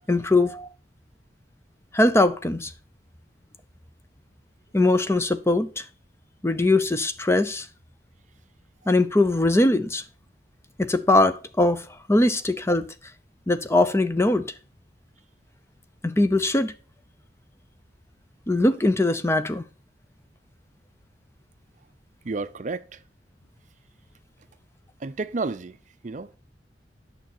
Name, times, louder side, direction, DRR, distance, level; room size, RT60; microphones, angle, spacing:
voice 1, 0.1-0.7 1.9-2.7 4.7-5.8 6.4-7.7 8.9-10.0 10.8-12.9 13.5-14.5 16.0-16.7 18.5-19.6, left 2 dB, 15° left, 0.6 m, -21 dB
voice 2, 22.2-23.0 25.0-25.8 26.0-26.3, right 3 dB, 40° right, 0.5 m, -31 dB
9.0 x 6.7 x 4.3 m
head